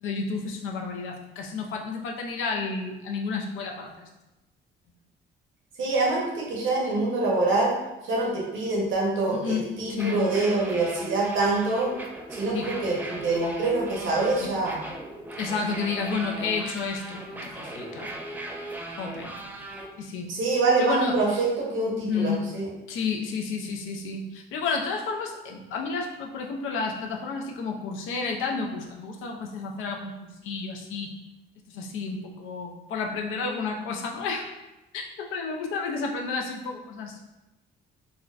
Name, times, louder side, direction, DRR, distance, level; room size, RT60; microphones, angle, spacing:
voice 1, 0.0-4.1 9.3-9.6 9.9-10.2 12.5-12.7 14.4-14.5 15.4-18.2 19.0-19.3 20.0-20.3 20.8-21.1 22.1-22.4 22.9-31.1 31.7-34.5 34.9-37.2, left 4 dB, 90° left, 2 dB, 0.5 m, -31 dB
voice 2, 5.8-7.7 8.0-11.9 12.3-14.8 20.3-22.7, right 3 dB, 75° right, -4 dB, 1.0 m, -25 dB
sound 1, 9.9-19.9, right 1 dB, 10° right, 0.4 m, -37 dB
3.6 x 2.1 x 2.4 m, 0.99 s
cardioid pair, 90°, 20 cm